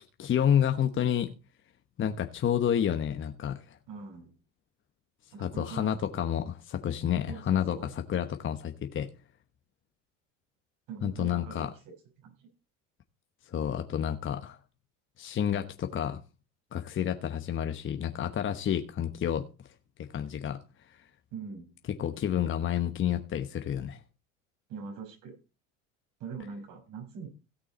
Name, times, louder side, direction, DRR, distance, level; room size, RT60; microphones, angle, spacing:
voice 1, 0.2-1.3 2.0-3.8 5.4-9.1 11.0-11.7 13.5-14.6 15.2-16.2 16.7-19.5 20.0-20.6 22.0-24.0, left 9 dB, 35° left, 1.1 m, -29 dB
voice 2, 3.9-4.3 5.3-6.0 7.3-7.9 10.9-12.5 21.3-21.7 24.7-25.3 26.2-27.3, right 6 dB, 60° right, 5.7 m, -42 dB
16.5 x 6.1 x 4.2 m
hypercardioid pair, 85°, 37 cm